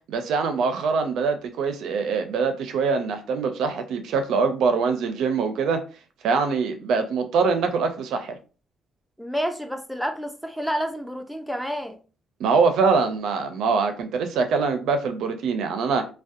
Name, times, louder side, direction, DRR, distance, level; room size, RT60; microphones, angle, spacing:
voice 1, 0.1-5.8 6.2-8.4 12.4-16.1, right 5 dB, 80° right, 0.4 m, -23 dB
voice 2, 9.2-12.0, equal, ahead, 0.4 m, -29 dB
2.6 x 2.1 x 2.4 m
cardioid pair, 90°, 0 cm